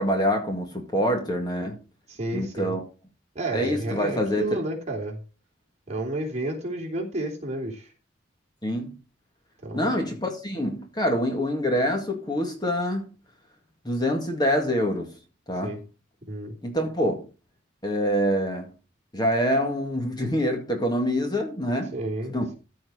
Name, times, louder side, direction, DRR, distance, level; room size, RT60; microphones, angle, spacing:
voice 1, 0.0-1.8 2.3-2.8 3.5-4.6 8.6-8.9 9.7-13.2 13.9-15.1 15.5-15.8 16.6-17.3 17.8-18.7 19.1-21.9 22.3-22.5, equal, 20° left, 1.9 m, -25 dB
voice 2, 2.1-2.8 3.4-5.2 5.9-7.9 9.6-9.9 15.6-15.8 16.3-16.5 21.9-22.3, right 2 dB, 35° right, 3.5 m, -31 dB
14.0 x 4.7 x 6.2 m
head